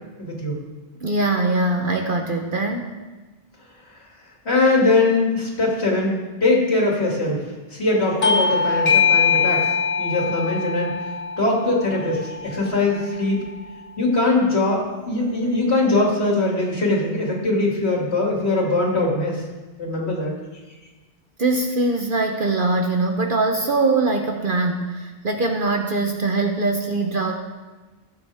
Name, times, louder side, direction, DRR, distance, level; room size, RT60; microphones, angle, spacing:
voice 1, 0.2-0.6 4.4-7.4 7.7-9.7 10.0-10.9 11.4-13.4 14.0-19.4 19.8-20.3, left 2 dB, 75° left, -2 dB, 2.8 m, -21 dB
voice 2, 1.0-2.9 21.4-27.3, right 2 dB, 55° right, 3 dB, 1.0 m, -22 dB
Bell / Doorbell, 8.2-13.3, left 6 dB, 45° left, 0.6 m, -22 dB
18.0 x 8.0 x 3.5 m, 1.2 s
omnidirectional pair, 1.1 m